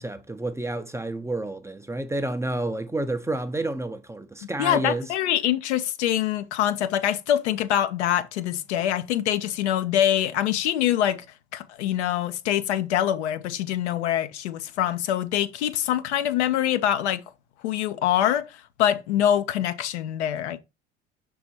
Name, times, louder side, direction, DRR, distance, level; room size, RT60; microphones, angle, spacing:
voice 1, 0.0-5.1, right 2 dB, 10° right, 0.6 m, -30 dB
voice 2, 4.6-11.2 11.5-17.2 17.6-20.6, left 11 dB, 70° left, 0.7 m, -24 dB
6.0 x 3.9 x 4.3 m
figure-of-eight pair, 65°, 35 cm